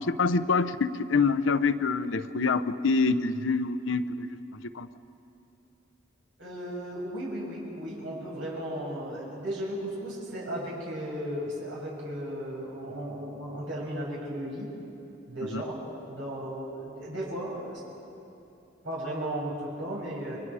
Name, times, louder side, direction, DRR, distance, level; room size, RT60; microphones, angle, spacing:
voice 1, 0.0-4.4 4.7-4.9 15.5-15.6, left 4 dB, 80° left, 12 dB, 0.8 m, -26 dB
voice 2, 6.4-14.7 15.3-17.8 18.8-20.4, right 1 dB, 80° right, -5 dB, 6.4 m, -35 dB
29.0 x 23.0 x 4.9 m, 2.8 s
head